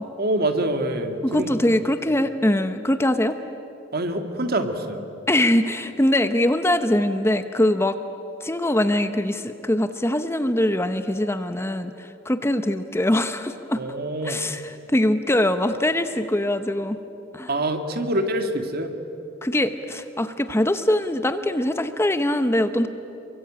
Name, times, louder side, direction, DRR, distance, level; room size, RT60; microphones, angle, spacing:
voice 1, 0.2-1.6 3.9-5.0 13.7-14.4 17.5-18.9, right 1 dB, 55° right, 6 dB, 2.2 m, -25 dB
voice 2, 1.2-3.4 5.3-8.0 8.4-13.8 14.2-14.6 14.9-17.0 17.3-17.5 19.4-22.9, left 1 dB, 15° left, 9 dB, 0.9 m, -22 dB
27.5 x 24.0 x 8.8 m, 2.9 s
head